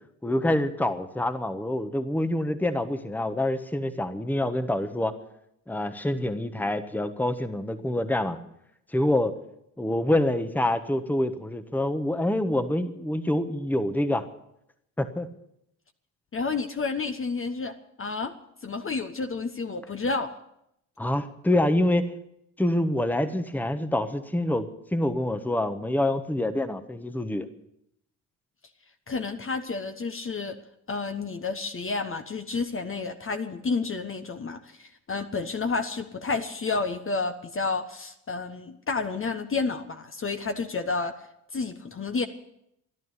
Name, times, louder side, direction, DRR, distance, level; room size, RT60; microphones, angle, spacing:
voice 1, 0.2-5.1 5.7-8.4 8.9-9.3 9.8-14.3 15.0-15.3 21.0-22.2 22.6-27.5, left 1 dB, 5° left, 10 dB, 1.3 m, -26 dB
voice 2, 16.3-18.3 18.6-20.3 29.1-30.6 30.9-41.1 41.5-42.3, left 4 dB, 25° left, 7 dB, 1.2 m, -30 dB
14.5 x 12.0 x 8.2 m, 0.78 s
hypercardioid pair, 55°, 46 cm